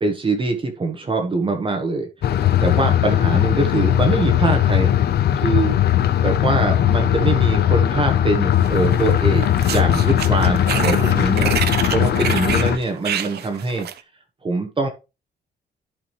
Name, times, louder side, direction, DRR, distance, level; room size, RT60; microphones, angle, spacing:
voice 1, 0.0-2.1 2.6-5.0 5.3-5.8 6.2-11.5 11.9-13.9 14.4-14.9, right 3 dB, 30° right, 4 dB, 1.3 m, -23 dB
sound 1, 2.2-12.8, left 11 dB, 65° left, 0.8 m, -18 dB
sound 2, 8.6-9.1 9.4-14.0, right 10 dB, 65° right, 0.7 m, -28 dB
12.0 x 5.0 x 3.2 m, 0.27 s
cardioid pair, 110°, 18 cm